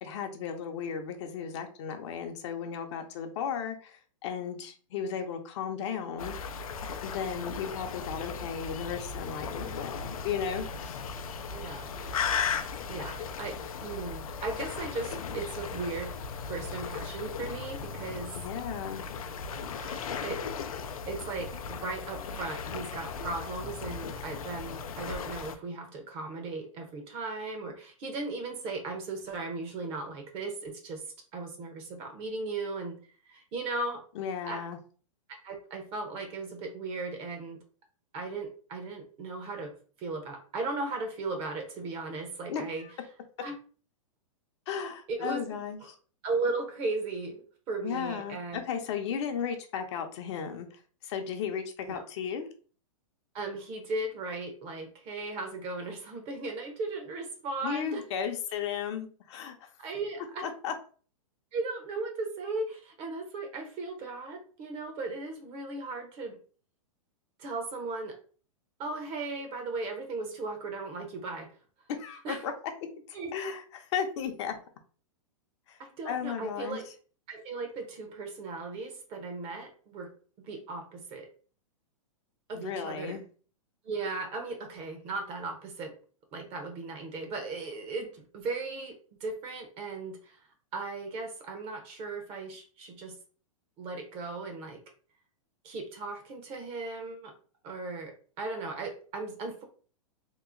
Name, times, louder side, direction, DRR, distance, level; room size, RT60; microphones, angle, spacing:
voice 1, 0.0-6.3 7.0-11.0 18.3-19.0 34.2-34.8 42.5-42.9 44.7-45.8 47.8-50.7 51.0-52.5 57.6-59.7 60.4-60.7 72.0-72.5 73.1-74.6 75.7-75.8 76.0-76.8 82.5-83.2, left 7 dB, 55° left, 5 dB, 0.7 m, -35 dB
sound 1, 6.2-25.6, left 6 dB, 85° left, 0.5 m, -37 dB
voice 2, 7.3-7.7 11.5-12.5 12.9-16.1 16.5-18.3 19.8-20.4 21.1-31.0 31.3-33.0 33.3-34.0 34.5-34.6 35.4-37.6 38.1-42.8 43.4-43.6 45.1-45.6 46.2-48.6 51.8-52.0 53.3-58.0 59.8-60.5 61.5-66.4 67.4-68.2 68.8-71.5 72.2-72.4 73.1-73.3 75.8-76.9 77.3-80.1 80.4-81.3 82.5-83.2 83.8-85.9 86.3-90.4 90.7-93.1 93.8-94.8 95.6-97.3 97.6-99.6, right 3 dB, 35° right, 4 dB, 0.9 m, -37 dB
3.0 x 2.0 x 3.7 m, 0.40 s
hypercardioid pair, 130°, 18 cm